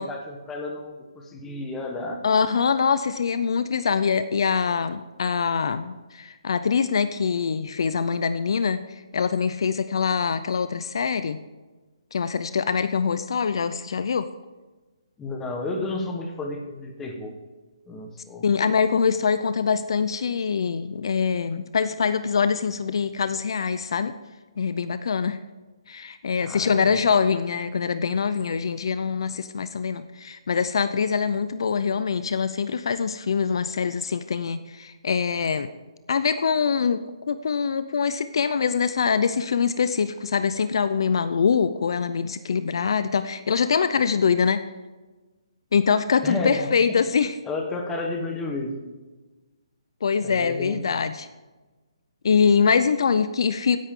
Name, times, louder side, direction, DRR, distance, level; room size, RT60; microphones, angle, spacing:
voice 1, 0.0-2.2 15.2-17.4 17.9-18.4 26.4-27.0 46.2-47.0 47.4-48.8 50.2-51.0, left 2 dB, 10° left, 2 dB, 1.2 m, -32 dB
voice 2, 2.2-8.8 9.1-11.4 12.1-14.3 18.4-24.1 24.6-25.4 25.9-35.7 36.1-44.6 45.7-47.4 50.0-51.3 52.2-53.8, left 6 dB, 55° left, 12 dB, 0.6 m, -24 dB
15.0 x 10.5 x 3.7 m, 1.2 s
hypercardioid pair, 170°, 3 cm